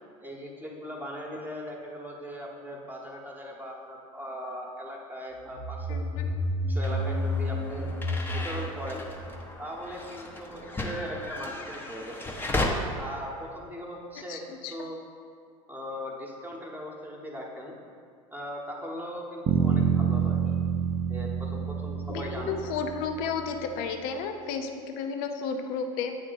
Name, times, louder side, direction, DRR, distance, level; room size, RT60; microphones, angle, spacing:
voice 1, 0.2-6.3 6.7-7.9 8.3-9.0 9.6-12.3 13.0-14.4 14.7-15.0 15.7-17.7 18.3-20.4 21.1-22.6, equal, 10° right, -1 dB, 1.0 m, -39 dB
sound 1, 5.4-10.0, left 1 dB, 70° left, 1.3 m, -31 dB
voice 2, 5.9-6.3 14.3-14.7 22.1-26.2, left 5 dB, 55° left, 5 dB, 0.6 m, -33 dB
sound 2, 6.8-12.7, left 2 dB, 10° left, 0.7 m, -35 dB
sound 3, 19.5-23.6, right 8 dB, 40° right, 0.5 m, -27 dB
8.5 x 3.1 x 4.0 m, 2.2 s
hypercardioid pair, 80°, 18 cm